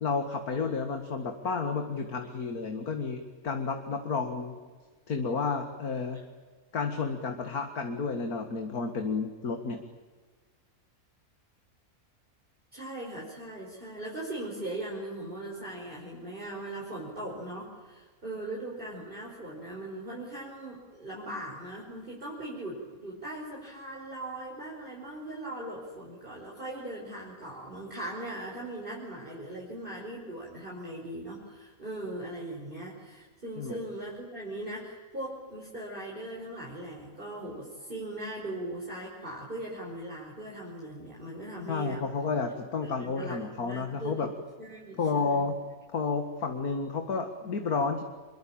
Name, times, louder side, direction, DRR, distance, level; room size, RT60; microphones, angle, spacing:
voice 1, 0.0-3.2 3.4-4.6 5.1-6.2 6.7-9.8 33.6-33.8 41.7-44.3 45.0-45.5 45.9-48.1, left 4 dB, 85° left, 5 dB, 2.4 m, -31 dB
voice 2, 12.7-42.0 42.8-44.3 44.6-45.4, right 1 dB, 35° right, -4 dB, 5.4 m, -39 dB
26.5 x 22.5 x 8.9 m, 1.4 s
omnidirectional pair, 1.5 m